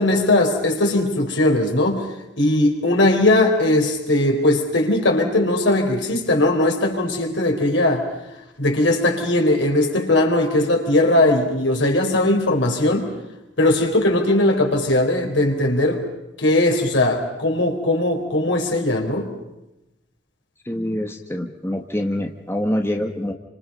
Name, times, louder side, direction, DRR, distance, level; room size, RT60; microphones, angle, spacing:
voice 1, 0.0-2.0 2.4-8.0 8.6-13.1 13.6-16.0 16.4-19.3, left 1 dB, 85° left, 2 dB, 4.5 m, -19 dB
voice 2, 20.6-23.3, left 1 dB, 15° left, 3 dB, 1.5 m, -25 dB
29.0 x 26.5 x 5.5 m, 0.94 s
head